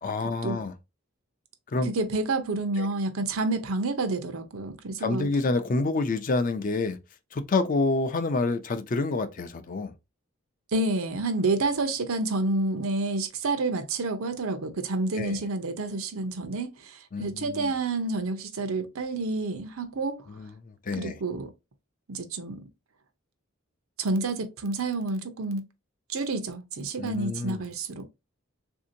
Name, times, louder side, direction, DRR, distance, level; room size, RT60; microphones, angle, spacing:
voice 1, 0.0-0.7 1.7-1.9 2.8-2.9 5.0-7.0 7.3-9.9 15.1-15.4 17.1-17.7 20.3-21.2 27.0-27.6, left 3 dB, 40° left, 0.4 m, -28 dB
voice 2, 1.9-5.3 10.7-20.2 21.0-21.5 22.1-22.6 24.0-25.6 26.1-28.0, right 3 dB, 90° right, 0.7 m, -29 dB
3.5 x 2.7 x 2.6 m
head